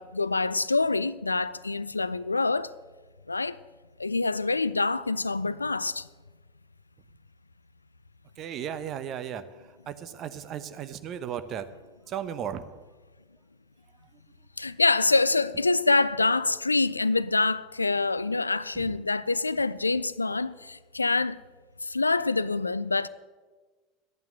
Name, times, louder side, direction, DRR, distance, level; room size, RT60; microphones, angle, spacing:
voice 1, 0.0-2.7 3.3-3.6 4.0-6.1 14.6-21.4 21.8-23.1, left 3 dB, 85° left, 0.3 m, -26 dB
voice 2, 8.4-9.4 9.9-11.6 12.1-12.7 18.7-18.9, right 9 dB, 40° right, 0.9 m, -35 dB
12.0 x 9.1 x 7.7 m
figure-of-eight pair, 75°, 0 cm